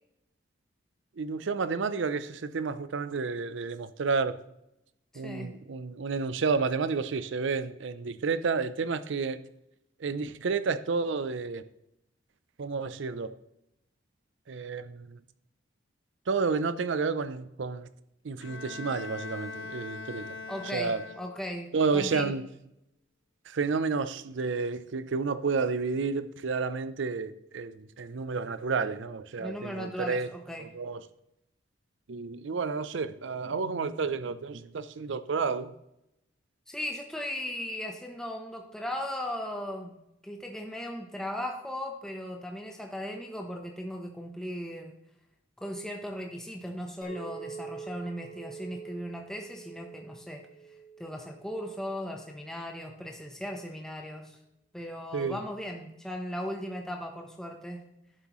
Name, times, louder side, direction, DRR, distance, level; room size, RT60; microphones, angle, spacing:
voice 1, 1.2-4.4 5.1-9.4 10.0-11.6 12.6-13.3 14.5-15.2 16.3-17.9 18.2-20.3 20.7-21.0 21.7-22.4 23.5-30.3 30.6-31.0 32.1-35.7 55.1-55.4, right 4 dB, 70° right, 0.5 m, -30 dB
voice 2, 5.1-5.5 20.5-22.3 29.4-30.6 36.7-39.9 40.2-44.9 45.6-50.4 51.0-54.4 54.7-57.9, left 1 dB, 5° left, 0.8 m, -37 dB
Bowed string instrument, 18.4-21.6, left 4 dB, 70° left, 0.7 m, -41 dB
Chink clink, 47.0-52.2, right 6 dB, 35° left, 1.9 m, -46 dB
11.0 x 7.3 x 3.1 m
head